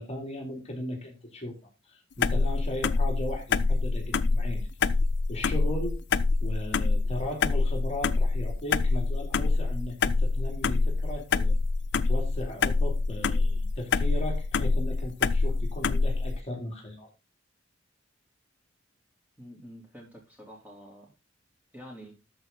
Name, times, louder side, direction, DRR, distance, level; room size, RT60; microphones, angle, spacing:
voice 1, 0.0-1.5 1.9-4.7 5.3-6.0 6.4-11.5 12.0-17.1, left 1 dB, 35° left, 2.9 m, -37 dB
sound 1, 2.2-16.4, left 3 dB, 65° left, 0.6 m, -26 dB
voice 2, 19.4-21.1 21.7-22.2, equal, 10° right, 3.5 m, -47 dB
13.0 x 5.3 x 3.8 m
head